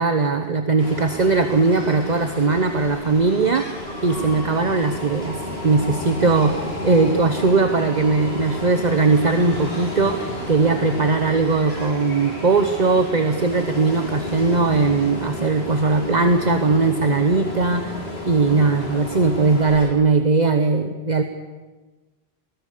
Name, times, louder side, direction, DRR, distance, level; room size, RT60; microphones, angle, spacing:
voice 1, 0.0-3.7 4.0-17.9 18.2-21.2, right 3 dB, 45° right, 7 dB, 1.1 m, -19 dB
Ocean, 0.8-19.9, left 1 dB, 80° left, 4.0 m, -32 dB
sound 1, 1.4-15.1, left 1 dB, 65° left, 3.7 m, -40 dB
21.0 x 19.5 x 6.7 m, 1.2 s
omnidirectional pair, 1.0 m